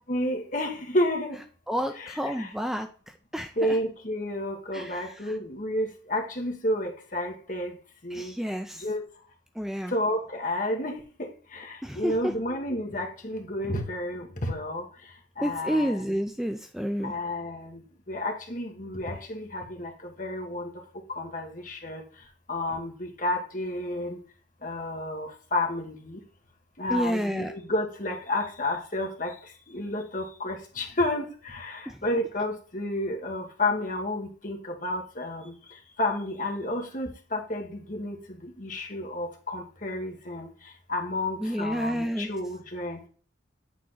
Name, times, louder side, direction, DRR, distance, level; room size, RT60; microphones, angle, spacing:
voice 1, 0.1-1.4 1.9-2.5 3.5-7.8 8.0-8.3 8.8-9.0 9.9-16.2 17.0-20.7 21.1-22.0 22.5-24.2 24.6-26.2 26.8-43.1, left 1 dB, 45° left, 2 dB, 1.6 m, -31 dB
voice 2, 1.7-2.9 3.3-3.5 4.7-5.0 8.1-8.8 9.6-9.9 11.8-12.2 15.4-17.1 26.9-27.5 31.9-32.0 41.4-42.3, equal, ahead, 6 dB, 0.4 m, -29 dB
8.5 x 3.7 x 3.9 m, 0.40 s
head